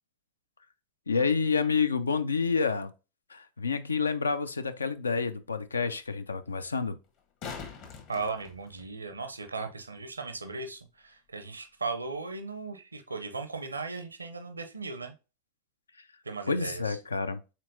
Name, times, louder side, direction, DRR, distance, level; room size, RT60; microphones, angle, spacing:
voice 1, 1.1-2.9 3.3-7.0 16.5-17.4, left 5 dB, 75° left, 0.3 m, -28 dB
sound 1, 7.0-9.2 12.0-12.1, left 6 dB, 40° left, 1.0 m, -43 dB
voice 2, 8.1-15.1 16.2-17.0, right 4 dB, 80° right, 0.5 m, -37 dB
4.3 x 3.7 x 2.6 m
figure-of-eight pair, 90°, 0 cm